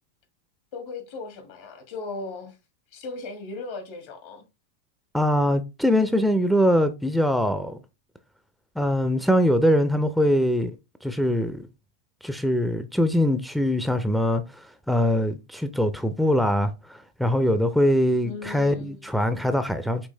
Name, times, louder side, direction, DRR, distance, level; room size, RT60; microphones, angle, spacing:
voice 1, 0.7-2.6 2.9-4.4 18.2-19.1, left 3 dB, 60° left, 1.6 m, -37 dB
voice 2, 5.1-7.8 8.8-10.7 11.0-11.7 12.2-20.1, equal, ahead, 0.4 m, -23 dB
5.3 x 3.1 x 3.2 m
hypercardioid pair, 105°, 0 cm